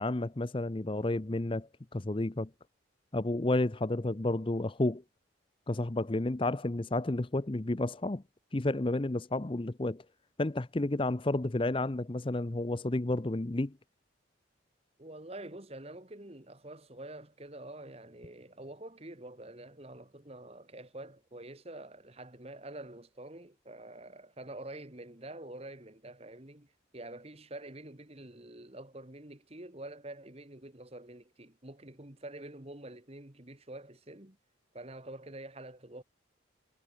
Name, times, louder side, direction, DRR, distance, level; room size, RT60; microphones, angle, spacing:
voice 1, 0.0-2.5 3.1-5.0 5.7-8.2 8.5-10.0 10.4-13.7, left 2 dB, 25° left, 0.6 m, -31 dB
voice 2, 15.0-34.4 34.7-36.0, right 1 dB, 30° right, 1.7 m, -47 dB
head